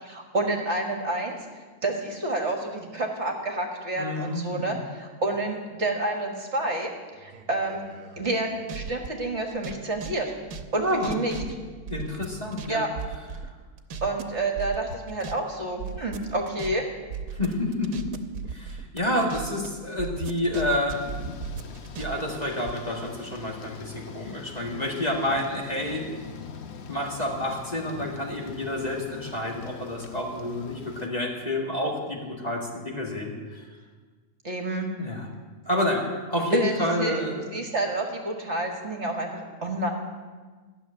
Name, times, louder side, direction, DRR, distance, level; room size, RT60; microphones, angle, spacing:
voice 1, 0.0-1.4 1.8-6.9 7.2-7.8 8.2-10.3 10.7-11.4 12.7-12.9 14.0-16.9 34.4-34.9 36.5-37.2 37.5-39.9, right 2 dB, 50° right, 2 dB, 1.8 m, -29 dB
voice 2, 4.0-4.8 10.8-11.4 11.9-12.8 17.3-18.1 18.5-21.0 22.0-26.1 26.9-33.7 35.0-35.3 35.7-37.5, left 1 dB, 25° left, -2 dB, 2.1 m, -29 dB
sound 1, 7.3-9.1 9.5-12.7 13.0-14.2 14.6-15.3 15.6-19.7 20.0-22.7, right 6 dB, 75° right, 1.4 m, -37 dB
Thunder / Rain, 20.9-31.1, left 5 dB, 50° left, 1.0 m, -43 dB
14.5 x 7.0 x 9.8 m, 1.4 s
omnidirectional pair, 1.6 m